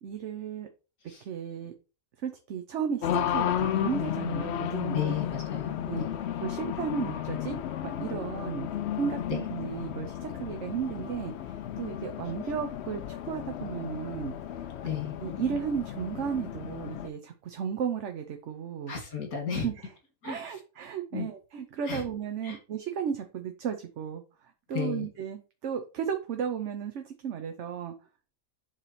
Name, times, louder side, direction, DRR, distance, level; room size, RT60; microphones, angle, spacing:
voice 1, 0.0-0.7 1.3-1.7 2.2-5.2 5.9-6.1 6.4-7.6 8.0-8.7 9.0-14.3 15.2-18.9 19.6-19.7 20.2-24.2 24.7-27.9, right 7 dB, 60° right, 6 dB, 1.0 m, -34 dB
Race car auto racing, 3.0-17.1, left 10 dB, 65° left, 0.7 m, -33 dB
voice 2, 4.9-6.2 9.3-9.4 14.8-15.2 18.9-19.7 20.2-20.6 21.1-21.3 21.9-22.0 22.4-22.6 24.7-25.1, left 7 dB, 90° left, 1 dB, 2.4 m, -33 dB
7.4 x 3.3 x 4.2 m, 0.33 s
omnidirectional pair, 1.5 m